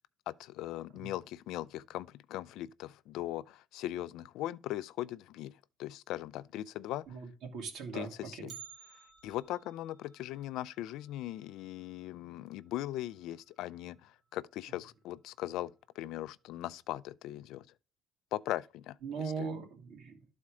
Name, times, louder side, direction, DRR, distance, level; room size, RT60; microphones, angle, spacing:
voice 1, 0.3-5.5 5.8-7.1 7.9-8.5 9.2-17.7 18.3-19.0 19.4-19.5, left 14 dB, 80° left, 0.3 m, -39 dB
voice 2, 7.1-8.6 19.0-20.3, right 5 dB, 75° right, 2.3 m, -40 dB
Bell, 8.5-12.6 12.8-12.9 13.4-13.5 14.3-14.4 15.2-15.5 15.8-15.9, right 8 dB, 40° right, 1.0 m, -55 dB
12.0 x 4.2 x 4.9 m
cardioid pair, 150°, 0 cm